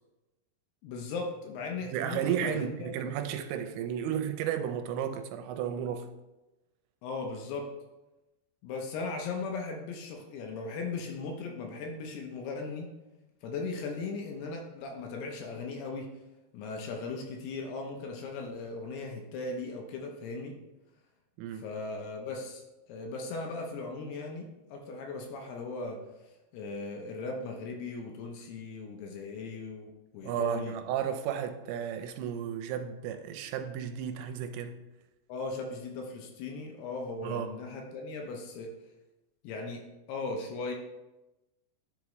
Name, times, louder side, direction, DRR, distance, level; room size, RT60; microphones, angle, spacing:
voice 1, 0.8-3.1 7.0-7.7 8.6-12.9 13.4-16.1 16.5-20.6 21.5-22.6 22.9-26.0 26.5-30.8 35.3-38.7 39.4-40.7, left 3 dB, 75° left, 2.5 m, -38 dB
voice 2, 1.9-6.1 21.4-21.7 30.2-34.7 37.2-37.5, right 9 dB, 85° right, 2.9 m, -33 dB
10.5 x 4.7 x 3.1 m
omnidirectional pair, 5.1 m